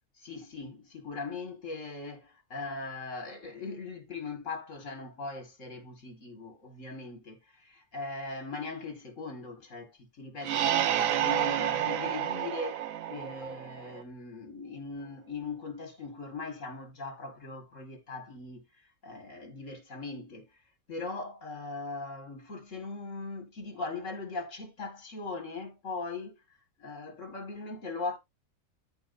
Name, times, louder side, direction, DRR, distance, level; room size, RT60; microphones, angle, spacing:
voice 1, 0.2-20.5 20.9-26.4 26.8-28.2, left 3 dB, 65° left, 2.6 m, -40 dB
sound 1, 10.4-14.0, right 11 dB, 80° right, 1.2 m, -30 dB
13.5 x 4.7 x 2.7 m
omnidirectional pair, 1.4 m